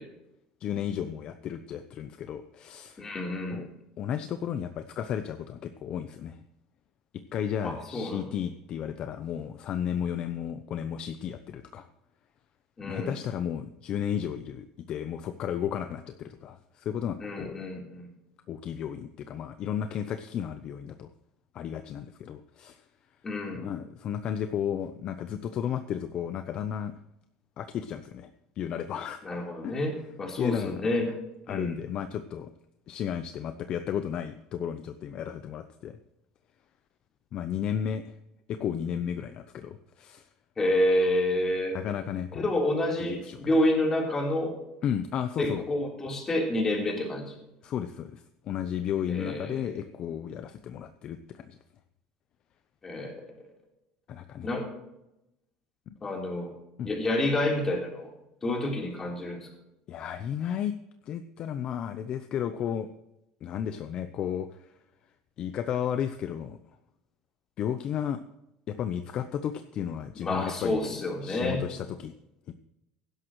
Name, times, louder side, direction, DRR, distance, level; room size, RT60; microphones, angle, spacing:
voice 1, 0.6-3.0 3.5-3.7 4.0-6.4 7.3-11.9 12.8-17.7 18.5-21.1 21.5-22.9 23.6-26.9 27.6-28.3 28.6-29.2 29.6-29.7 30.4-30.8 31.5-32.5 32.9-36.0 37.3-38.1 38.5-40.3 41.7-42.5 43.0-43.4 44.8-45.6 47.6-51.6 54.1-54.5 55.9-56.0 56.8-56.9 59.9-60.7 61.0-62.9 63.4-64.7 65.4-66.6 67.6-68.2 68.7-72.1 72.5-72.6, left 9 dB, 40° left, 9 dB, 0.7 m, -33 dB
voice 2, 3.0-3.6 7.6-8.2 12.8-13.1 17.2-18.1 23.2-23.6 29.2-31.1 31.5-31.8 40.6-41.8 42.3-44.5 45.4-47.3 49.1-49.7 52.8-53.2 54.4-54.7 56.0-56.5 56.9-58.1 58.4-59.5 70.2-71.6, left 1 dB, 20° left, 0 dB, 3.6 m, -28 dB
16.0 x 11.5 x 3.1 m, 0.89 s
cardioid pair, 145°, 2 cm